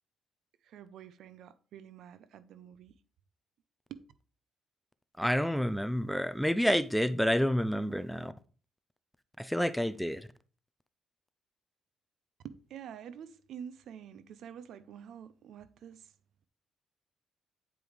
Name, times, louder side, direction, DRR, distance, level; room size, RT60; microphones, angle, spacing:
voice 1, 0.6-2.9 3.9-4.0 12.4-16.1, right 8 dB, 75° right, 0.6 m, -47 dB
voice 2, 5.2-8.3 9.4-10.3, equal, ahead, 0.5 m, -29 dB
9.0 x 5.1 x 3.2 m
cardioid pair, 90°, 0 cm